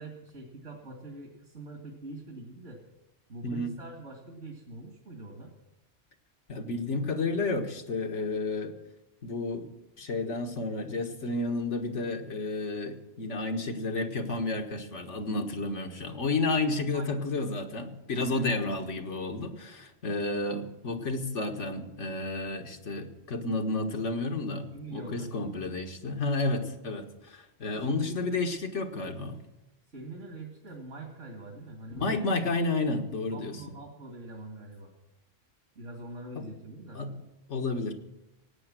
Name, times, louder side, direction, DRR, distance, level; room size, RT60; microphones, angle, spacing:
voice 1, 0.0-2.8 3.3-5.5 16.9-17.1 18.3-18.5 24.7-25.3 27.8-28.5 29.9-32.3 33.3-34.9 35.8-37.0, right 2 dB, 75° right, 1 dB, 2.6 m, -43 dB
voice 2, 3.4-3.7 6.5-8.7 9.2-9.7 10.0-29.4 32.0-33.6 36.4-36.5 37.0-37.1 37.5-37.9, left 3 dB, 80° left, 5 dB, 1.8 m, -31 dB
17.5 x 9.0 x 7.6 m, 0.94 s
omnidirectional pair, 1.2 m